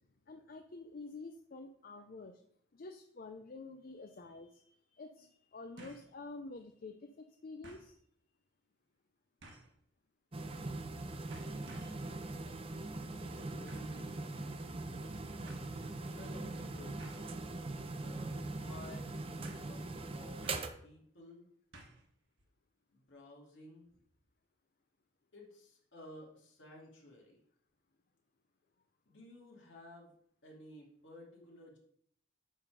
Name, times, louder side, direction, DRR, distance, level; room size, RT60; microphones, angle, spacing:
voice 1, 0.3-2.4 2.7-8.0, left 3 dB, 50° left, 6 dB, 0.5 m, -49 dB
sound 1, 3.9-4.0 5.8-6.1 6.5-6.6 7.6-7.9 9.4-9.8 10.7-11.0 11.3-12.1 13.7-14.0 15.0-15.1 15.5-15.7 17.0-17.4 17.8-18.1 18.4-18.5 19.4-19.8 20.4-20.8 21.7-22.1 22.4-22.5, right 1 dB, 65° right, 1.4 m, -55 dB
sound 2, 10.3-20.7, right 2 dB, 30° right, 0.6 m, -41 dB
voice 2, 13.3-14.7 15.7-17.3 17.9-19.1 19.4-20.5 20.8-21.5 22.9-24.0 25.3-27.4 29.1-30.1 30.4-31.8, left 1 dB, 70° left, -2 dB, 2.5 m, -55 dB
9.2 x 3.8 x 5.0 m, 0.66 s
head